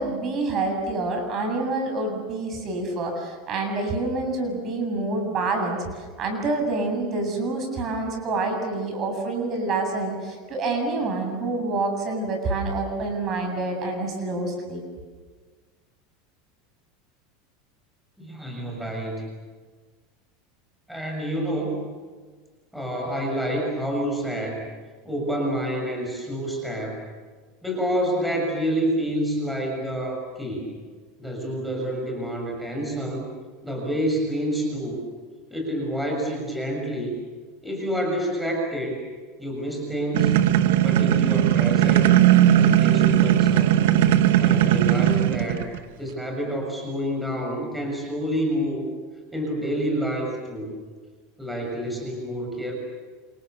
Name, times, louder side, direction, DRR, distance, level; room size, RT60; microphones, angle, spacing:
voice 1, 0.0-14.8, right 2 dB, 35° right, 3 dB, 7.8 m, -27 dB
voice 2, 18.2-19.3 20.9-21.8 22.7-24.7 25.0-27.0 27.6-30.8 31.2-33.3 33.6-35.0 35.5-37.2 37.6-39.0 39.4-40.4 40.8-42.2 42.5-43.7 44.4-45.7 46.0-48.9 49.3-50.7 51.4-52.8, equal, ahead, 0 dB, 7.0 m, -28 dB
sound 1, 40.1-45.8, right 11 dB, 80° right, 1.5 m, -18 dB
28.5 x 28.0 x 6.9 m, 1.5 s
supercardioid pair, 140°, 0 cm